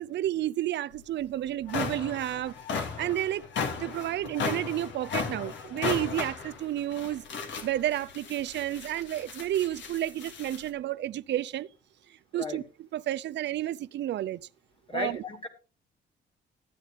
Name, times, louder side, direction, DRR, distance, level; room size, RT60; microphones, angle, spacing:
voice 1, 0.0-3.4 3.8-11.7 12.1-12.6 12.9-14.4 14.9-15.2, right 13 dB, 65° right, 0.5 m, -31 dB
sound 1, 1.0-1.1 1.5-10.7, left 5 dB, 70° left, 2.0 m, -36 dB
voice 2, 14.9-15.5, left 3 dB, 25° left, 2.4 m, -35 dB
13.0 x 9.0 x 3.5 m
cardioid pair, 90°, 20 cm